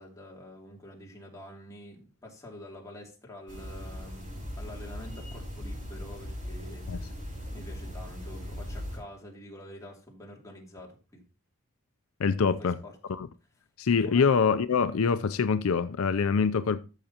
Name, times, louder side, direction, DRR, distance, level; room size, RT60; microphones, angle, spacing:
voice 1, 0.0-4.3 4.6-11.2 12.5-12.9 14.0-14.3, left 1 dB, 15° left, 2.7 m, -47 dB
sound 1, 3.5-9.0, equal, 40° right, 4.9 m, -39 dB
voice 2, 12.2-12.8 13.1-13.3 13.8-16.8, left 5 dB, 80° left, 0.5 m, -25 dB
14.0 x 6.6 x 2.9 m
head